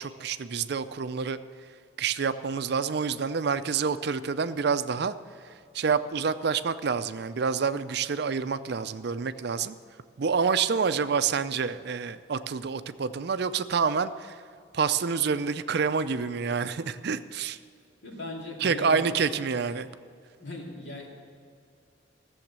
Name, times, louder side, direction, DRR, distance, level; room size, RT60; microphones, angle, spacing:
voice 1, 0.0-1.4 2.0-5.1 5.4-9.7 10.2-14.4 14.7-17.6 18.6-19.9, right 5 dB, 55° right, 12 dB, 0.5 m, -28 dB
voice 2, 18.0-19.2 20.4-21.1, left 2 dB, 65° left, -2 dB, 2.9 m, -38 dB
15.0 x 7.1 x 7.4 m, 2.3 s
head